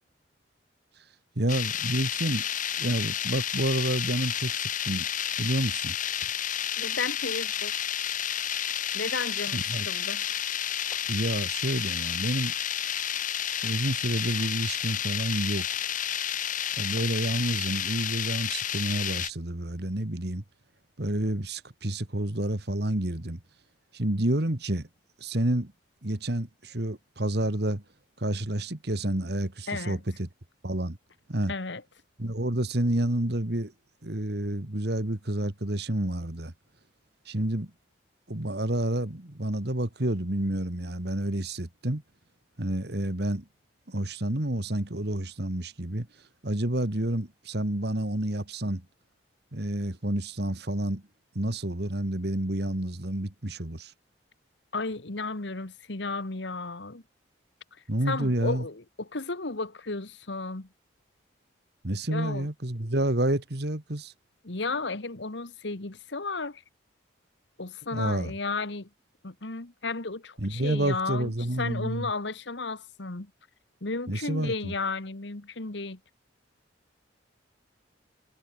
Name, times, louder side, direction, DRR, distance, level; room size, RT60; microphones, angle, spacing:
voice 1, 1.4-2.4 2.8-5.1 5.4-6.0 9.5-9.9 11.1-12.5 13.6-15.7 16.8-20.4 21.0-23.4 23.9-24.9 25.2-25.7 26.0-27.8 28.2-30.3 30.6-31.0 31.3-31.5 32.2-33.7 34.0-36.5 37.3-37.7 38.3-42.0 42.6-43.4 43.9-46.1 46.4-48.9 49.5-51.0 51.4-53.9 57.9-58.6 61.8-64.1 67.9-68.3 70.4-72.1 74.1-74.7, right 1 dB, 55° right, 2.0 m, -29 dB
sound 1, 1.5-19.3, left 10 dB, 40° left, 1.1 m, -31 dB
voice 2, 6.8-7.9 8.9-10.2 29.7-30.0 31.5-31.8 54.7-57.0 58.1-60.7 62.1-62.5 64.4-66.6 67.6-68.9 69.2-73.3 73.8-76.0, left 3 dB, 65° left, 1.5 m, -33 dB
sound 2, 8.6-8.7 9.0-12.2 12.5-18.6 18.9-19.0, left 4 dB, 25° left, 6.2 m, -57 dB
head